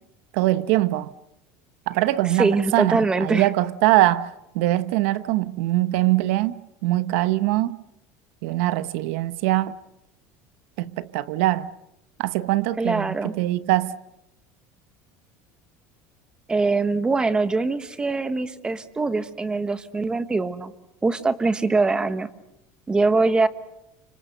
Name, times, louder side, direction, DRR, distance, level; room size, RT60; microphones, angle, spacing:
voice 1, 0.3-1.1 1.9-7.8 8.4-9.8 10.8-11.7 12.2-13.9, right 16 dB, 75° right, 1.0 m, -22 dB
voice 2, 2.4-3.5 12.8-13.3 16.5-20.7 21.0-22.3 22.9-23.5, right 3 dB, 10° right, 1.2 m, -23 dB
29.5 x 26.0 x 6.7 m
cardioid pair, 160°, 7 cm